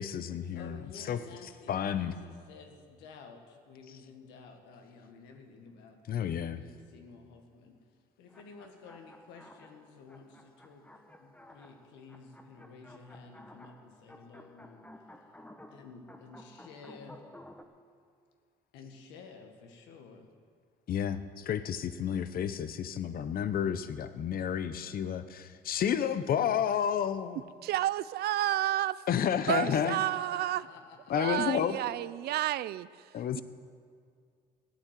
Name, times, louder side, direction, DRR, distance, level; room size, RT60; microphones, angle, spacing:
voice 1, 0.0-1.2 1.7-2.1 6.1-6.6 20.9-27.4 29.1-30.0 31.1-31.8 33.1-33.4, left 8 dB, 55° left, 12 dB, 0.8 m, -31 dB
voice 2, 0.6-6.0 6.4-7.8 8.2-10.9 11.1-15.2 15.7-17.2 18.7-20.3 29.7-31.4, left 4 dB, 85° left, 4 dB, 1.7 m, -52 dB
sound 1, 8.3-17.6, left 1 dB, 10° left, 1.3 m, -54 dB
voice 3, 27.6-29.0 29.5-30.6 31.1-32.9 33.3-33.4, right 14 dB, 65° right, 19 dB, 0.4 m, -30 dB
15.0 x 9.1 x 7.5 m, 2.1 s
supercardioid pair, 70°, 18 cm